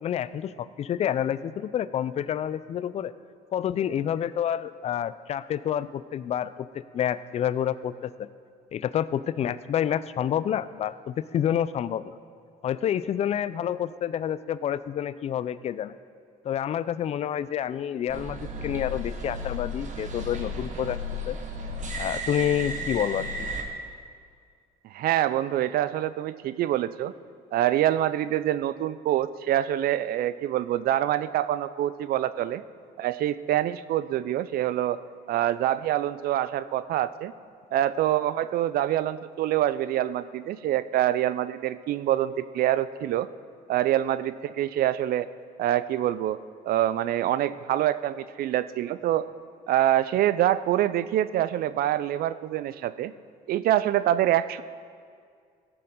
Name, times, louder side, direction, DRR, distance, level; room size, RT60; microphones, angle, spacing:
voice 1, 0.0-3.1 3.5-6.7 6.9-8.3 8.7-12.1 12.6-15.9 16.4-21.0 21.3-21.4 22.0-23.5, left 10 dB, 40° left, 15 dB, 0.4 m, -28 dB
sound 1, 18.1-23.6, equal, 45° right, 1.2 m, -34 dB
voice 2, 24.9-27.1 27.5-32.6 33.0-35.0 35.3-37.3 37.7-43.3 43.7-45.3 45.6-46.4 46.6-49.3 49.7-53.1 53.5-54.6, right 12 dB, 65° right, 15 dB, 0.4 m, -25 dB
16.5 x 6.8 x 3.7 m, 2.2 s
cardioid pair, 110°, 17 cm